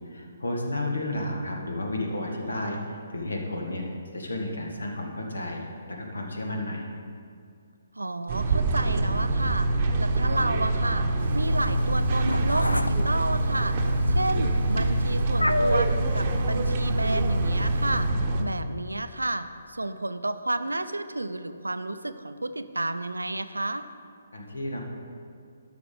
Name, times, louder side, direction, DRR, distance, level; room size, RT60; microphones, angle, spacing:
voice 1, 0.1-3.8 4.1-5.6 5.9-6.8 24.3-24.8, left 1 dB, 70° left, 1 dB, 1.7 m, -32 dB
voice 2, 8.0-11.1 11.3-13.8 14.1-23.8, right 2 dB, 80° right, 11 dB, 0.5 m, -31 dB
sound 1, 8.3-18.4, right 2 dB, 35° right, 0.9 m, -25 dB
Meow, 11.2-18.1, left 1 dB, 90° left, 0.4 m, -31 dB
12.5 x 5.9 x 5.3 m, 2.3 s
figure-of-eight pair, 135°, 0 cm